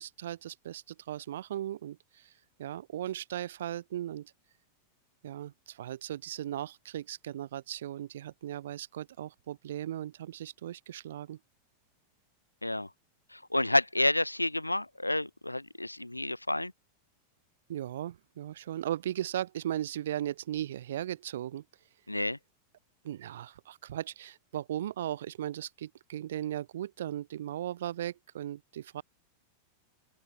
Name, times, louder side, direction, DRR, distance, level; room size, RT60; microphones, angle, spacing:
voice 1, 0.0-2.3 2.6-4.3 5.2-11.4 17.7-21.6 23.0-29.0, right 11 dB, 60° right, 0.4 m, -37 dB
voice 2, 13.3-16.7 22.1-22.4, left 1 dB, 85° left, 0.4 m, -29 dB
open air
figure-of-eight pair, 90°, 0 cm